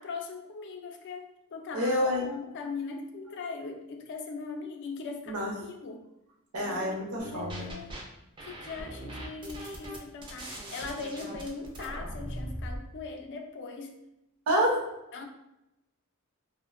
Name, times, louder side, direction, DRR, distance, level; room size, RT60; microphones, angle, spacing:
voice 1, 0.0-6.0 6.6-6.9 7.2-7.9 8.5-14.0 15.1-15.3, left 4 dB, 55° left, 4 dB, 0.4 m, -40 dB
voice 2, 1.7-2.3 5.3-5.5 6.5-7.7 14.5-14.8, equal, 75° right, -2 dB, 0.7 m, -28 dB
sound 1, 7.2-8.0 8.4-12.8, right 1 dB, 25° right, 0.3 m, -40 dB
2.4 x 2.1 x 2.4 m, 0.88 s
head